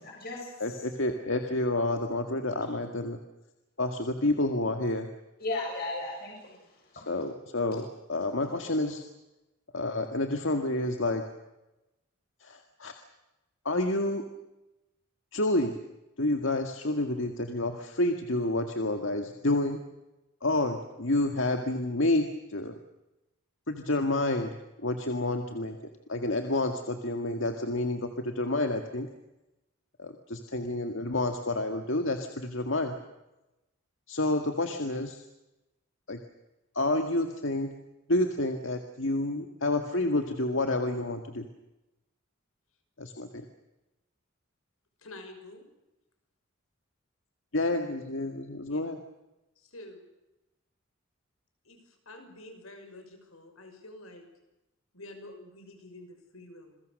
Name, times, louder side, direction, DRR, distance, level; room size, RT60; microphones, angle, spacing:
voice 1, 0.0-0.8 5.4-6.6 7.0-7.1, left 2 dB, 45° left, -2 dB, 7.4 m, -35 dB
voice 2, 0.6-3.2 3.8-5.1 6.9-9.0 9.7-11.2 12.4-12.9 13.7-14.2 15.3-15.7 16.2-19.8 20.4-22.7 23.7-25.8 26.1-29.1 30.0-32.9 34.1-35.2 36.1-36.2 36.7-37.8 38.1-41.5 43.0-43.5 47.5-49.0, left 2 dB, 65° left, 5 dB, 2.0 m, -29 dB
voice 3, 45.0-45.7 48.7-48.8 49.6-50.0 51.6-54.3 54.9-56.8, left 1 dB, 85° left, 6 dB, 6.0 m, -48 dB
28.0 x 22.5 x 6.7 m, 0.97 s
head